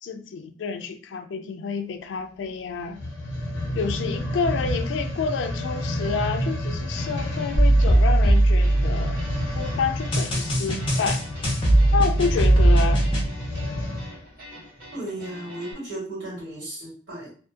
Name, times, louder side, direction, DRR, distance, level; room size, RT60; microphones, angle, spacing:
voice 1, 0.0-3.0 3.8-9.2 9.5-11.2 11.9-13.1, left 5 dB, 80° left, 6 dB, 0.3 m, -29 dB
sound 1, 2.9-14.2 14.8-14.9, left 1 dB, 65° left, 0.8 m, -30 dB
sound 2, 6.9-15.7, left 1 dB, 55° right, 1.3 m, -45 dB
sound 3, 7.5-9.4 10.1-13.2, right 1 dB, 30° left, 0.7 m, -19 dB
voice 2, 14.9-17.3, right 1 dB, 80° right, -6 dB, 1.5 m, -35 dB
2.4 x 2.4 x 2.5 m, 0.42 s
head